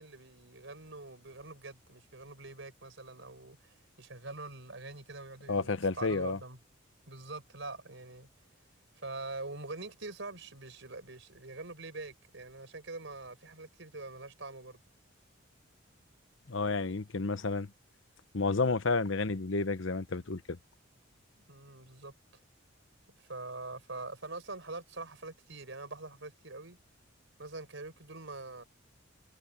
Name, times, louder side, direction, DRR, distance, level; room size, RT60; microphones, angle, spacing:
voice 1, 0.0-6.6 7.1-8.3 9.0-14.8 21.4-22.1 23.2-26.8 27.4-28.6, right 3 dB, 65° right, 4.8 m, -44 dB
voice 2, 5.5-6.4 16.5-17.7 18.3-20.4, left 3 dB, 70° left, 0.9 m, -30 dB
head